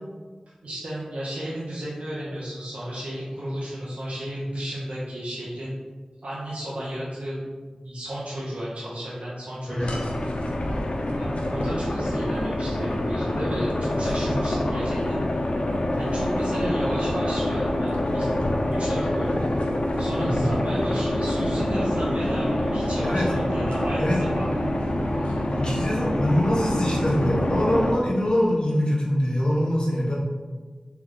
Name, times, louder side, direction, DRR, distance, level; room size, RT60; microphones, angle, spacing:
voice 1, 0.6-5.8 6.2-7.5 7.7-10.1 11.2-15.2 16.0-18.4 18.7-19.4 20.0-24.8 25.2-25.4, right 1 dB, 85° right, -8 dB, 0.8 m, -33 dB
sound 1, 9.8-27.9, left 1 dB, 70° left, 0.6 m, -26 dB
voice 2, 25.6-30.1, left 1 dB, 45° left, -4 dB, 1.1 m, -24 dB
3.4 x 3.2 x 3.9 m, 1.4 s
wide cardioid pair, 45°, 2 cm